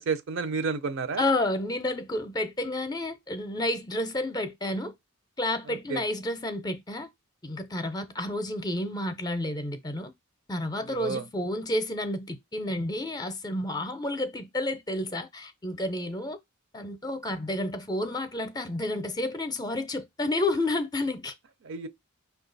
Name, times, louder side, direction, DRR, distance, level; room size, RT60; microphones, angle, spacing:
voice 1, 0.0-1.2 5.7-6.0 10.9-11.2 21.6-21.9, right 5 dB, 60° right, 0.5 m, -31 dB
voice 2, 1.2-4.9 5.4-7.1 7.4-10.1 10.5-16.4 16.7-21.3, left 1 dB, 20° left, 0.5 m, -30 dB
5.5 x 2.3 x 3.9 m
head